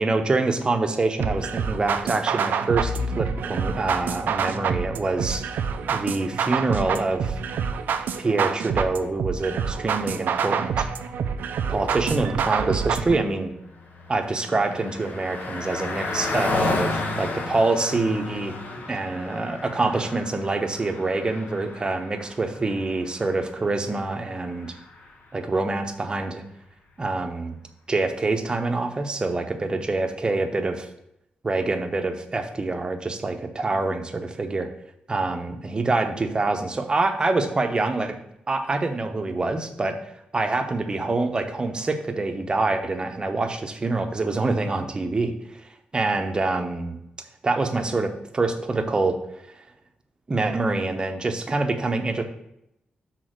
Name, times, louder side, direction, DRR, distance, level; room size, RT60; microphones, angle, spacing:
voice 1, 0.0-5.4 5.9-7.4 8.2-10.9 11.7-13.5 14.1-18.5 18.9-24.7 25.3-26.4 27.0-27.6 27.9-30.9 31.4-34.7 35.1-38.2 38.5-40.0 40.3-45.3 45.9-47.0 47.4-49.2 50.3-52.2, right 3 dB, 30° right, 5 dB, 0.9 m, -25 dB
sound 1, 1.2-13.2, right 6 dB, 80° right, 0.5 m, -27 dB
Bowed string instrument, 2.8-7.9, left 5 dB, 40° left, 2.2 m, -38 dB
Car passing by, 13.5-25.2, left 3 dB, 70° left, 1.1 m, -33 dB
6.2 x 4.1 x 6.4 m, 0.79 s
cardioid pair, 105°, 3 cm